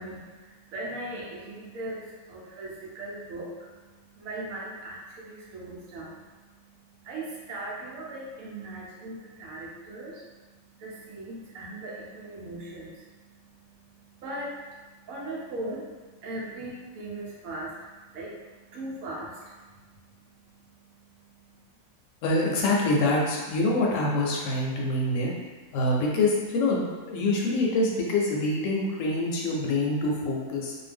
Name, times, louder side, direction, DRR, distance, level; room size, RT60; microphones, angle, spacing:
voice 1, 0.0-21.6, right 1 dB, 75° right, -4 dB, 1.1 m, -40 dB
voice 2, 22.2-25.3 25.7-30.8, left 2 dB, 70° left, -2 dB, 0.9 m, -25 dB
2.6 x 2.2 x 3.4 m, 1.4 s
omnidirectional pair, 1.5 m